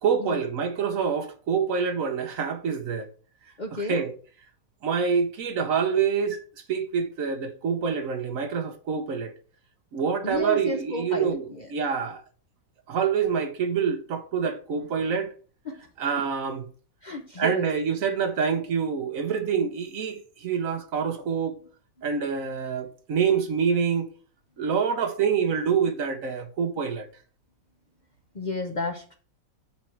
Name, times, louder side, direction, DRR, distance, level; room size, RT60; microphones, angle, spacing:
voice 1, 0.0-3.1 3.8-4.1 4.8-6.4 6.7-9.3 9.9-12.2 12.9-15.3 16.0-16.6 17.4-21.6 22.0-24.1 24.6-27.1, right 6 dB, 65° right, 1.2 m, -26 dB
voice 2, 3.6-4.0 10.2-11.7 15.6-15.9 16.1-16.2 17.0-17.7 22.0-22.1 28.3-29.2, left 2 dB, 40° left, 0.7 m, -33 dB
7.0 x 4.5 x 4.5 m
omnidirectional pair, 1.6 m